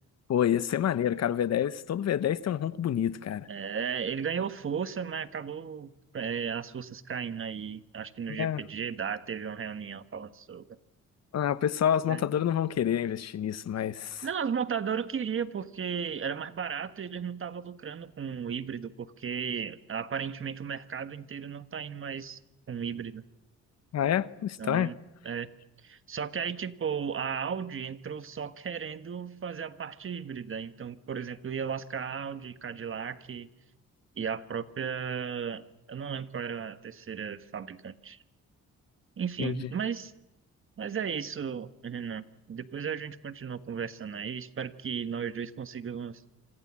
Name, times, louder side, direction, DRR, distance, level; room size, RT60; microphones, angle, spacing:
voice 1, 0.3-3.5 8.4-8.6 11.3-14.3 23.9-24.9 39.4-39.5, left 10 dB, 60° left, 1.1 m, -28 dB
voice 2, 3.5-10.7 12.1-12.2 14.2-22.4 22.7-23.2 24.6-24.9 25.2-25.5 25.8-33.5 34.2-38.2 39.2-40.1 40.8-46.2, right 7 dB, 45° right, 1.6 m, -35 dB
27.0 x 26.0 x 7.6 m
cardioid pair, 90°, 30 cm